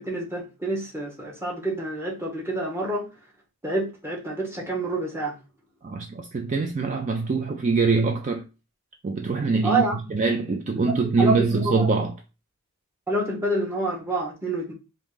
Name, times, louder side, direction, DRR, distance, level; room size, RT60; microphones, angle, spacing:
voice 1, 0.0-3.1 3.6-5.4 9.6-10.0 10.7-10.8 11.2-11.9 13.1-14.7, right 2 dB, 10° right, 0.9 m, -27 dB
voice 2, 5.8-8.4 9.0-9.8 10.1-12.1, right 4 dB, 35° right, 0.4 m, -23 dB
3.6 x 2.6 x 3.7 m
head